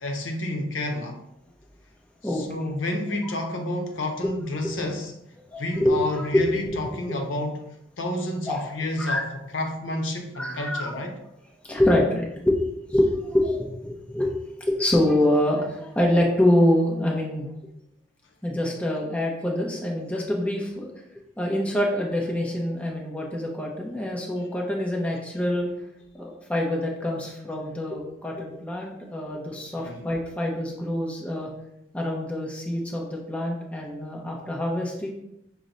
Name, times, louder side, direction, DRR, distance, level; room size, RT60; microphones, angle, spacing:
voice 1, 0.0-1.2 2.4-5.1 5.6-7.6 8.0-9.3 9.5-11.1 29.8-30.1, left 1 dB, 75° left, 3 dB, 0.7 m, -29 dB
voice 2, 2.2-2.6 5.5-6.4 6.8-6.9 8.5-8.7 9.0-9.2 10.4-11.0 11.6-17.5 18.4-20.9 21.4-25.7 26.1-31.5 31.9-35.1, left 1 dB, 5° left, -2 dB, 0.6 m, -25 dB
5.9 x 2.1 x 3.9 m, 0.84 s
head